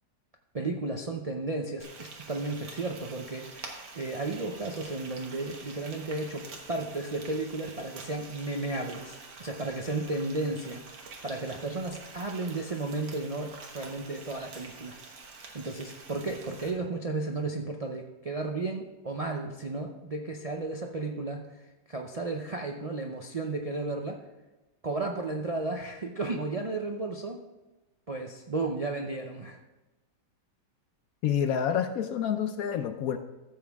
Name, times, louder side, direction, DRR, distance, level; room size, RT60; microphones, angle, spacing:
voice 1, 0.5-15.0 15.5-24.2 24.8-27.4 28.1-29.6, right 2 dB, 65° right, 2 dB, 0.3 m, -34 dB
Frying (food), 1.8-16.7, right 4 dB, 90° right, 1.9 m, -47 dB
voice 2, 31.2-33.2, left 8 dB, 70° left, 8 dB, 1.0 m, -28 dB
13.5 x 7.2 x 3.5 m, 1.1 s
omnidirectional pair, 1.7 m